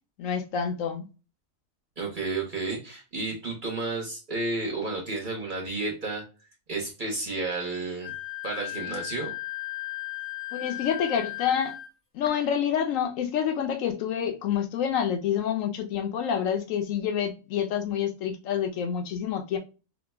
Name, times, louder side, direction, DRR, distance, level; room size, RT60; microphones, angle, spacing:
voice 1, 0.2-1.1 10.5-11.7 12.1-19.6, left 8 dB, 70° left, 0.9 m, -28 dB
voice 2, 2.0-6.2 6.7-8.1 8.4-9.3, right 3 dB, 45° right, 0.8 m, -31 dB
Wind instrument woodwind instrument, 8.0-11.9, left 17 dB, 35° left, 0.6 m, -36 dB
3.0 x 2.1 x 3.3 m
omnidirectional pair, 1.5 m